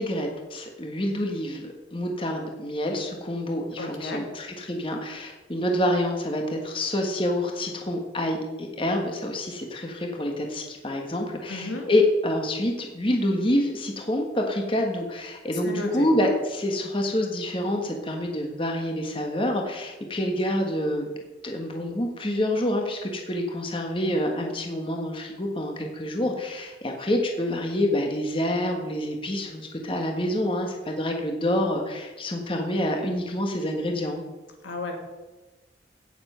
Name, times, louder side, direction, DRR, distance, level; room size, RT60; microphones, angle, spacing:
voice 1, 0.0-21.1 21.4-34.2, left 1 dB, 30° left, 2 dB, 1.5 m, -27 dB
voice 2, 3.8-4.2 11.5-11.9 15.6-16.1 34.6-35.0, left 2 dB, 90° left, 2 dB, 2.7 m, -32 dB
17.0 x 7.1 x 5.7 m, 1.2 s
head